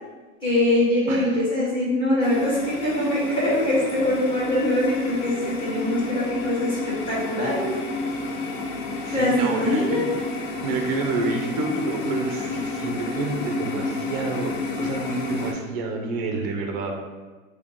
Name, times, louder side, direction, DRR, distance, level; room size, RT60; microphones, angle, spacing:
voice 1, 0.4-7.7 9.1-10.0, left 1 dB, 10° left, -8 dB, 1.3 m, -23 dB
voice 2, 1.1-1.4 9.1-10.1 10.6-17.0, right 4 dB, 30° right, 2 dB, 0.4 m, -29 dB
sound 1, 2.2-15.5, left 3 dB, 65° left, 0.7 m, -30 dB
4.8 x 2.1 x 2.8 m, 1.3 s
supercardioid pair, 150°, 41 cm